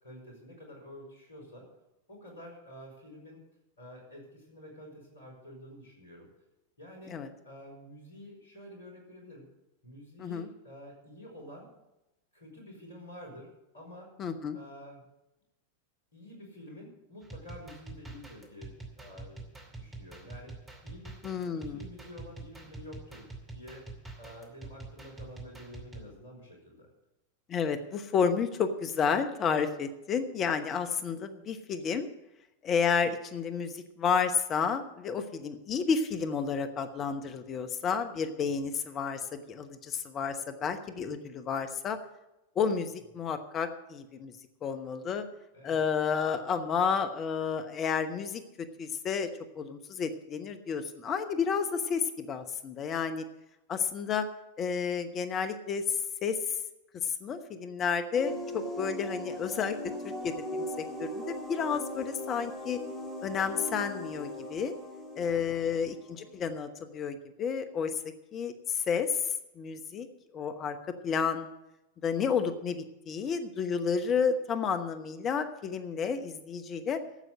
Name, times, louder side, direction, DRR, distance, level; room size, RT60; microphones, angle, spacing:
voice 1, 0.0-1.7 2.1-3.4 3.8-6.3 6.8-7.2 7.4-9.4 9.8-11.7 12.3-14.1 14.5-15.0 16.1-21.2 21.5-23.3 23.5-23.8 24.2-26.9 45.5-45.9 65.6-65.7, left 1 dB, 70° left, 1 dB, 5.0 m, -49 dB
voice 2, 14.2-14.6 21.2-21.8 27.5-32.1 32.6-42.0 42.6-44.3 44.6-45.3 45.6-49.3 49.5-53.2 53.7-54.3 54.6-56.4 57.0-62.8 63.2-64.7 65.2-67.9 68.3-69.2 69.6-70.1 70.3-70.8 71.0-71.5 72.0-77.0, left 6 dB, 30° left, 8 dB, 0.9 m, -31 dB
sound 1, 17.2-26.1, right 3 dB, 15° right, 2.6 m, -46 dB
sound 2, 58.1-66.5, equal, 10° left, 4.6 m, -39 dB
12.5 x 8.0 x 7.8 m, 0.93 s
figure-of-eight pair, 90°, 0 cm